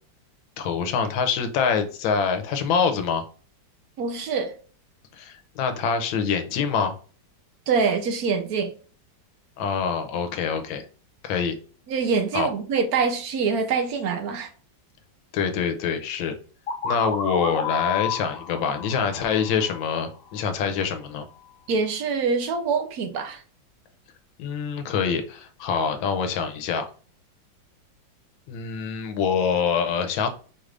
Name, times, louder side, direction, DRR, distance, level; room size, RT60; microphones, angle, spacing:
voice 1, 0.6-3.2 5.2-6.9 9.6-10.9 11.2-11.6 12.3-12.5 15.3-16.4 16.8-21.2 24.4-26.8 28.5-30.3, left 6 dB, 85° left, 1.5 m, -25 dB
voice 2, 4.0-4.5 7.7-8.7 11.9-14.5 21.7-23.4, right 5 dB, 65° right, 1.0 m, -25 dB
scratching-beep, 16.7-20.4, left 6 dB, 55° left, 0.6 m, -31 dB
4.8 x 2.5 x 3.2 m
omnidirectional pair, 2.1 m